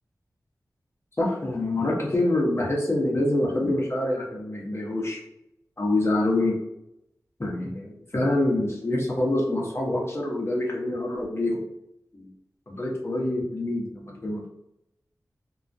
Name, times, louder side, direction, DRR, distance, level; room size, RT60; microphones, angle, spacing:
voice 1, 1.2-5.2 5.8-6.6 7.4-11.6 12.1-12.3 12.7-14.5, left 1 dB, 40° left, -2 dB, 0.8 m, -26 dB
2.3 x 2.1 x 2.6 m, 0.83 s
cardioid pair, 45°, 7 cm